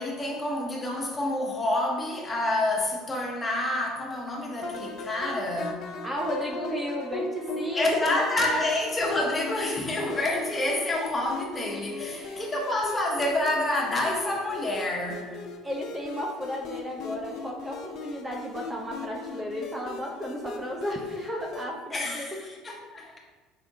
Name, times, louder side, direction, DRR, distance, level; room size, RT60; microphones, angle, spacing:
voice 1, 0.0-5.9 7.7-15.4 21.9-23.2, left 1 dB, 25° left, -1 dB, 1.1 m, -28 dB
sound 1, 4.6-21.7, left 3 dB, 55° left, 0.5 m, -38 dB
voice 2, 6.0-8.7 12.1-13.2 14.0-14.3 15.6-22.3, equal, 20° right, 0 dB, 0.6 m, -34 dB
4.7 x 3.3 x 2.7 m, 1.4 s
hypercardioid pair, 65°, 0 cm